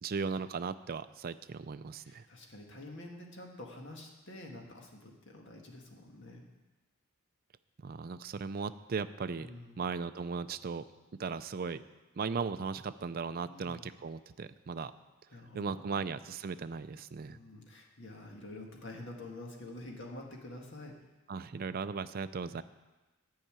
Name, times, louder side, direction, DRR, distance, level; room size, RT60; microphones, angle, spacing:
voice 1, 0.0-2.2 7.8-9.5 9.8-10.8 11.2-11.8 12.2-14.9 15.5-17.4 21.3-22.6, right 5 dB, 45° right, 12 dB, 0.4 m, -37 dB
voice 2, 2.0-6.4 9.4-9.8 13.5-13.9 15.3-16.1 17.3-21.0, left 1 dB, 55° left, 1 dB, 1.8 m, -48 dB
11.0 x 5.7 x 8.8 m, 1.1 s
head